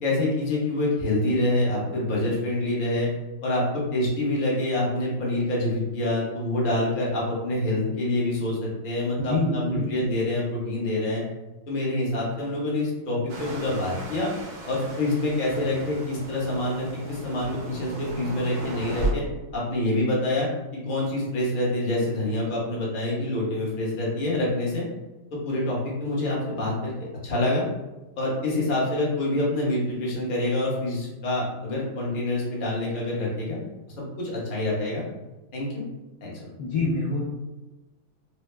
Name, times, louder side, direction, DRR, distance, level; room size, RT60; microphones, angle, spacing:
voice 1, 0.0-3.1 3.4-11.2 11.7-14.3 14.7-19.2 19.5-20.5 20.7-24.8 25.3-26.9 27.2-27.6 28.2-33.6 34.0-35.0 35.5-35.8 36.2-36.3, left 1 dB, 40° left, -5 dB, 0.7 m, -26 dB
voice 2, 9.2-9.9 36.6-37.3, left 3 dB, 85° left, -3 dB, 0.9 m, -26 dB
sound 1, 13.3-19.1, right 2 dB, 60° right, 1.1 m, -35 dB
4.6 x 2.0 x 3.2 m, 1.1 s
omnidirectional pair, 2.3 m